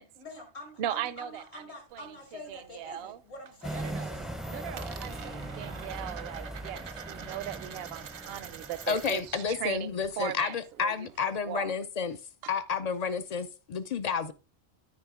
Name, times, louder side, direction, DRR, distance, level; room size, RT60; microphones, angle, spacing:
voice 1, 0.2-4.3, left 2 dB, 70° left, 2.5 m, -46 dB
voice 2, 0.8-1.6 1.9-2.1 2.5-3.2 3.7-4.1 4.5-11.7 12.4-12.5, right 11 dB, 70° right, 0.8 m, -38 dB
Coin (dropping), 1.9-3.1 3.4-3.9 4.1-9.4 9.7-11.4, right 8 dB, 85° right, 1.2 m, -46 dB
sound 1, 3.6-9.9, right 1 dB, ahead, 0.4 m, -40 dB
voice 3, 8.9-12.2 12.5-14.3, left 6 dB, 50° left, 0.5 m, -31 dB
12.5 x 4.8 x 3.6 m
omnidirectional pair, 1.1 m